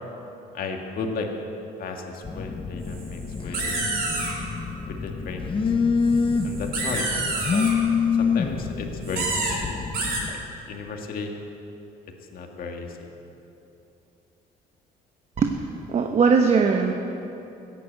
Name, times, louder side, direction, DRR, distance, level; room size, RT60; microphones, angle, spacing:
voice 1, 0.5-1.3 1.8-3.8 4.9-5.6 6.4-7.2 7.5-7.7 8.1-9.8 10.3-10.4 10.7-11.3 12.3-13.1, left 4 dB, 60° left, 2 dB, 2.0 m, -34 dB
Telephone, 2.2-10.3, left 5 dB, 30° left, 1.0 m, -26 dB
sound 1, 2.9-3.1 3.3-4.3 6.1-7.7 9.0-9.6 9.9-10.2, right 3 dB, 65° right, 4.2 m, -28 dB
voice 2, 15.4-16.9, right 5 dB, 40° right, 4 dB, 1.0 m, -20 dB
15.0 x 10.5 x 8.2 m, 2.9 s
cardioid pair, 110°, 17 cm